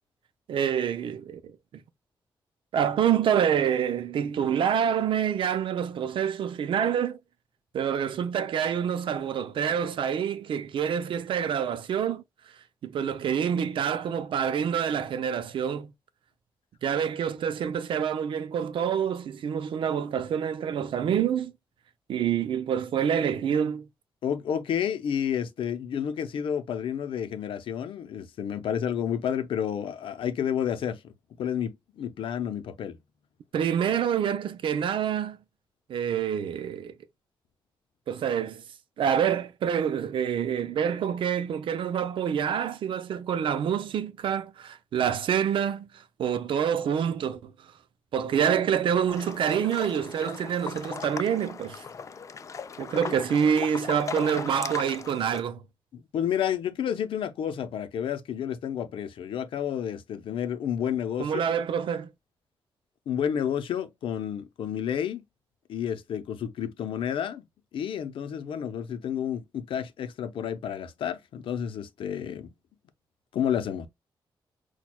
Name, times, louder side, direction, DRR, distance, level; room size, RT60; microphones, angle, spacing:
voice 1, 0.5-1.5 2.7-7.2 7.7-12.2 12.8-15.9 16.8-21.5 22.1-23.9 33.5-35.4 35.9-36.9 38.1-38.6 39.0-45.9 46.2-47.5 48.1-51.8 52.8-55.6 61.2-62.1, right 8 dB, 80° right, 0.5 m, -27 dB
voice 2, 24.2-31.0 31.4-33.0 55.9-61.3 63.1-65.2 65.7-67.4 67.7-72.5 73.3-73.9, left 9 dB, 85° left, 0.6 m, -30 dB
sound 1, 49.1-55.4, left 5 dB, 35° left, 0.3 m, -38 dB
6.0 x 2.3 x 2.2 m
wide cardioid pair, 120°, 9 cm